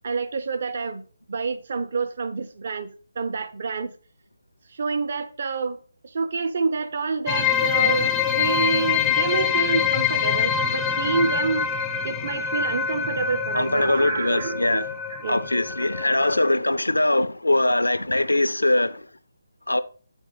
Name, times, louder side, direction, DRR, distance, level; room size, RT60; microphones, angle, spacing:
voice 1, 0.0-1.0 1.3-3.9 4.7-5.8 6.0-11.7 12.0-14.8 15.1-15.4, right 4 dB, 45° right, 0.5 m, -28 dB
sound 1, 7.3-16.6, left 8 dB, 10° left, 0.3 m, -25 dB
voice 2, 13.5-14.9 15.3-19.1 19.7-19.8, left 2 dB, 75° left, 0.5 m, -22 dB
8.4 x 4.4 x 3.8 m
figure-of-eight pair, 150°, 0 cm